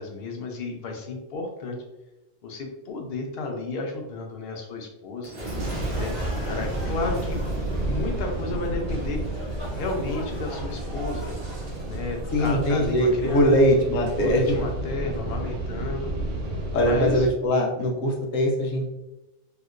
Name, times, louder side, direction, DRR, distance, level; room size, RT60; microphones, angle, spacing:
voice 1, 0.0-1.8 2.4-5.3 5.9-6.2 6.5-9.2 9.8-11.4 11.8-13.6 14.2-16.1 16.8-17.3, left 3 dB, 60° left, 2 dB, 0.8 m, -32 dB
Boom, 5.2-14.6 15.1-15.6, right 2 dB, 30° right, 0.7 m, -33 dB
sound 1, 5.4-14.5, equal, 35° left, 1.2 m, -44 dB
sound 2, 6.5-17.3, right 1 dB, 75° right, 1.0 m, -33 dB
voice 2, 12.3-14.6 16.7-18.9, equal, 85° left, 0 dB, 1.1 m, -21 dB
3.2 x 2.8 x 2.4 m, 1.0 s
omnidirectional pair, 1.3 m